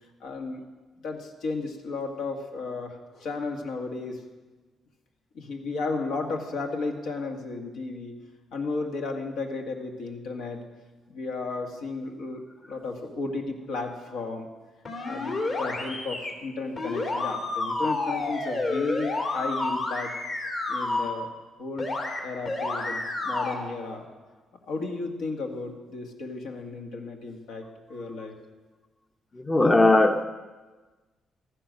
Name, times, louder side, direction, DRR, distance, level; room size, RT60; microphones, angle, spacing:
voice 1, 0.2-0.6 1.0-4.2 5.4-8.2 8.5-10.6 11.1-14.5 15.0-20.1 20.7-21.3 21.6-21.9 22.2-24.1 24.6-28.4, left 3 dB, 80° left, 2 dB, 1.9 m, -34 dB
sound 1, 14.9-16.3 16.8-21.1 21.8-22.2 22.5-23.5, left 2 dB, 50° left, 3.1 m, -30 dB
voice 2, 29.3-30.3, left 2 dB, 20° left, 7 dB, 0.7 m, -19 dB
14.0 x 10.0 x 6.4 m, 1.3 s
cardioid pair, 90°, 0 cm